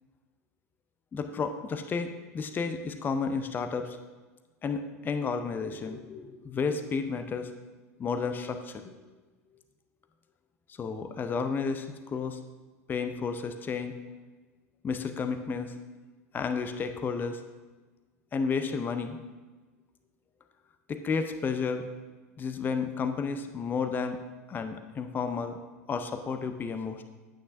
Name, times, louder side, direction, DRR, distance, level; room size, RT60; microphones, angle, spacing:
voice 1, 1.1-4.0 4.6-7.5 8.0-8.9 10.8-12.4 12.9-13.9 14.8-15.7 16.3-17.4 18.3-19.2 20.9-21.9 22.4-24.2 24.5-25.6 25.9-27.0, left 5 dB, 20° left, 8 dB, 0.6 m, -32 dB
9.4 x 8.8 x 2.6 m, 1.3 s
figure-of-eight pair, 80°, 9 cm